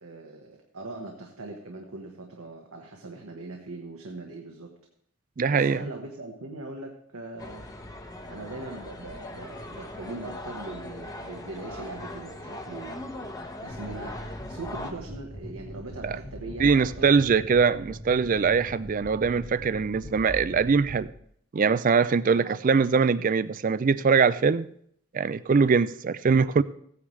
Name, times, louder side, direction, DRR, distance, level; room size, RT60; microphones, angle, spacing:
voice 1, 0.0-4.7 5.5-7.7 8.3-13.1 13.6-17.1 22.2-22.6, right 2 dB, 85° right, 1.3 m, -41 dB
voice 2, 5.4-5.8 16.0-16.2 16.6-21.1 21.5-24.7 25.1-26.6, right 5 dB, 40° right, 0.4 m, -22 dB
sound 1, 7.4-14.9, left 1 dB, 15° left, 1.0 m, -40 dB
sound 2, 13.7-21.1, equal, 40° left, 1.5 m, -41 dB
16.0 x 9.5 x 3.2 m
head